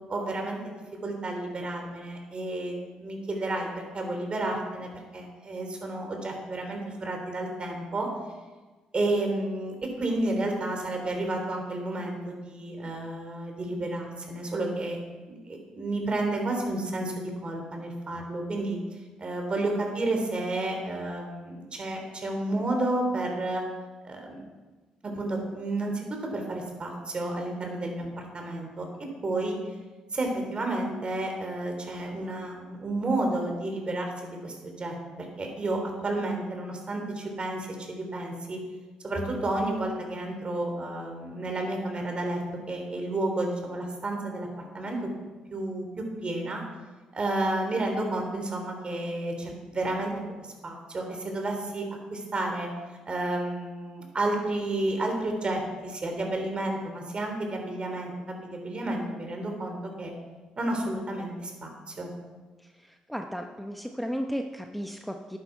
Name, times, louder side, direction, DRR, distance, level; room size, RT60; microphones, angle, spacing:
voice 1, 0.1-0.7 1.0-2.7 3.0-3.7 3.9-8.1 8.9-15.0 15.3-18.8 19.2-23.6 24.0-24.4 25.0-28.1 28.3-28.9 29.2-29.6 30.1-35.0 35.4-38.6 39.0-42.4 42.7-44.5 44.7-45.0 45.5-46.6 47.1-50.1 50.6-51.8 52.1-52.7 53.1-60.1 60.6-62.1, right 2 dB, 40° right, 2 dB, 3.4 m, -31 dB
voice 2, 63.1-65.4, equal, ahead, 4 dB, 0.9 m, -34 dB
11.5 x 9.3 x 4.7 m, 1.3 s
supercardioid pair, 65°, 3 cm